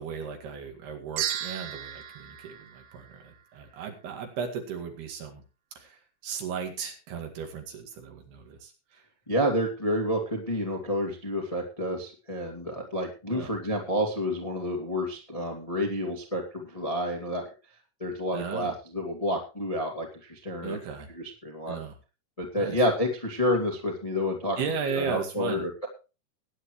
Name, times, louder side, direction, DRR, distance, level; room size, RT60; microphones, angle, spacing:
voice 1, 0.0-5.4 5.8-9.1 13.3-13.5 18.3-18.7 20.6-21.1 21.7-22.0 22.5-22.8 24.6-25.6, right 6 dB, 60° right, 3 dB, 3.8 m, -36 dB
sound 1, 1.2-3.6, right 11 dB, 80° right, 4.0 m, -35 dB
voice 2, 9.3-17.5 18.0-20.8 21.4-21.8 22.4-24.6 24.9-25.9, equal, 25° left, 1 dB, 0.7 m, -29 dB
20.5 x 9.6 x 3.1 m, 0.32 s
omnidirectional pair, 5.6 m